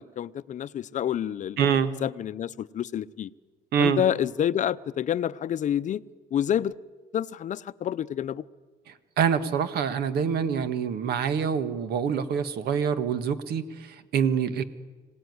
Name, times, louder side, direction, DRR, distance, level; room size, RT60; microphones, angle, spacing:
voice 1, 0.0-1.6 2.0-3.3 3.8-6.0 6.3-6.7 7.1-8.4, left 10 dB, 45° left, 15 dB, 0.7 m, -28 dB
voice 2, 1.6-1.9 3.7-4.0 8.9-14.6, right 7 dB, 70° right, 11 dB, 1.7 m, -26 dB
25.5 x 18.0 x 9.6 m, 1.3 s
cardioid pair, 110°, 17 cm